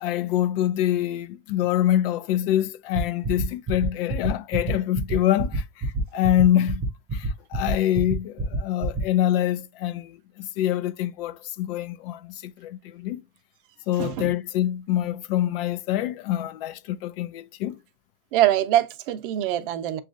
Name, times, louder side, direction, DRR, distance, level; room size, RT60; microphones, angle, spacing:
voice 1, 0.0-5.6 6.1-13.2 13.9-17.8, left 12 dB, 65° left, 0.5 m, -25 dB
sound 1, 2.9-9.0, right 2 dB, 15° right, 0.3 m, -27 dB
voice 2, 14.0-14.3 18.3-20.0, right 13 dB, 60° right, 0.6 m, -23 dB
7.1 x 2.4 x 2.5 m
supercardioid pair, 175°, 30 cm